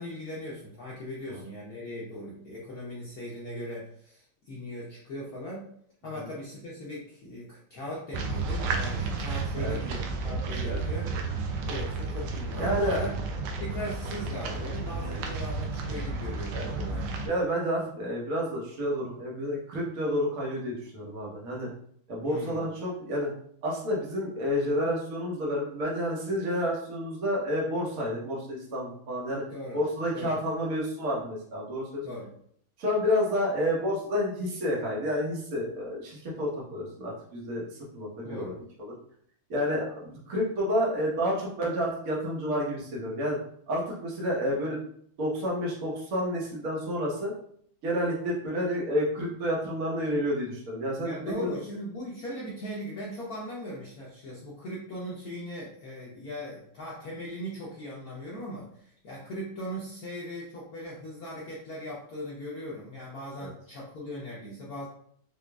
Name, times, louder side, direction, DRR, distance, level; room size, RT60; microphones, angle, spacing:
voice 1, 0.0-5.7 6.0-11.1 11.7-17.1 22.2-22.6 29.5-29.8 30.1-30.4 32.0-32.3 38.2-38.6 51.0-64.9, equal, 75° left, -5 dB, 0.8 m, -39 dB
sound 1, 8.1-17.3, right 3 dB, 85° right, 1.5 m, -32 dB
voice 2, 12.6-13.1 16.5-21.7 22.1-23.3 23.6-29.4 29.7-32.1 32.8-38.5 38.8-38.9 39.5-43.4 43.7-44.8 45.2-47.3 47.8-51.5 63.4-63.5, equal, 50° right, -4 dB, 1.2 m, -30 dB
4.9 x 2.3 x 2.2 m, 0.64 s
omnidirectional pair, 2.4 m